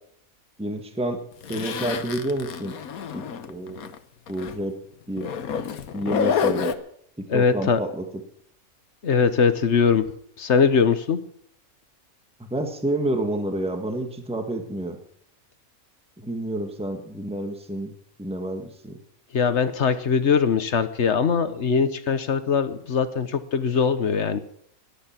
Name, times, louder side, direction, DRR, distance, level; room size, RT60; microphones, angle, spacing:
voice 1, 0.6-1.2 1.5-2.7 3.1-3.9 4.3-4.8 5.1-5.3 5.9-6.8 7.2-8.1 12.5-15.0 16.2-17.9 18.2-19.0, right 1 dB, 5° right, 5 dB, 1.7 m, -29 dB
Zipper (clothing), 1.4-4.0 4.3-4.5 5.2-6.7, left 6 dB, 80° left, 1.5 m, -28 dB
voice 2, 7.3-7.8 9.0-10.1 10.4-11.2 19.3-24.4, left 6 dB, 55° left, 12 dB, 1.3 m, -21 dB
18.0 x 12.0 x 5.9 m, 0.65 s
omnidirectional pair, 1.5 m